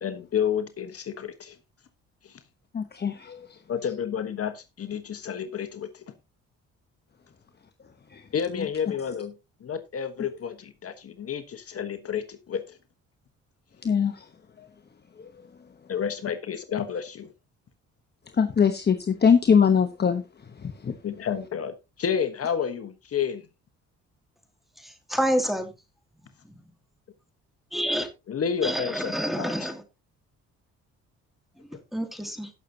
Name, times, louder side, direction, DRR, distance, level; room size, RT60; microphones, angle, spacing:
voice 1, 0.0-1.5 2.2-2.3 3.7-6.0 8.3-9.3 9.6-12.8 15.9-17.3 21.0-23.4 28.3-29.7, left 7 dB, 50° left, 1.3 m, -30 dB
voice 2, 2.7-3.5 8.1-8.2 8.5-8.7 13.8-14.3 14.6-14.7 15.2-15.3 18.4-20.2 20.6-20.9, left 6 dB, 35° left, 1.1 m, -22 dB
voice 3, 24.8-25.7 27.7-28.1 28.6-29.8 31.9-32.5, equal, ahead, 2.6 m, -28 dB
17.5 x 6.7 x 2.8 m
cardioid pair, 90°, 30 cm